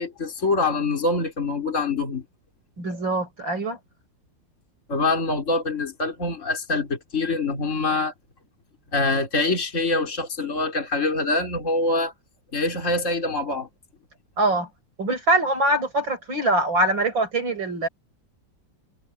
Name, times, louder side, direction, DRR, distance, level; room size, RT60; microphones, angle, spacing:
voice 1, 0.0-2.2 4.9-8.1 8.9-12.1 12.5-13.7, left 3 dB, 40° left, 4.2 m, -24 dB
voice 2, 2.8-3.8 14.4-14.7 15.0-17.9, right 1 dB, 85° right, 7.3 m, -23 dB
omnidirectional pair, 2.0 m